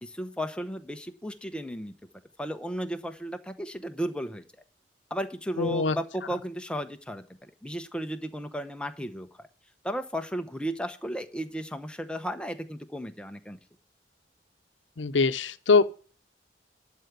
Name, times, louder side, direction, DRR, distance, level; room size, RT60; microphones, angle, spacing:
voice 1, 0.0-1.9 2.4-4.4 5.1-7.3 7.6-9.5 9.8-13.6, equal, 5° left, 0.9 m, -34 dB
voice 2, 5.6-6.0 15.0-15.8, left 4 dB, 90° left, 0.8 m, -22 dB
12.0 x 4.8 x 6.9 m
head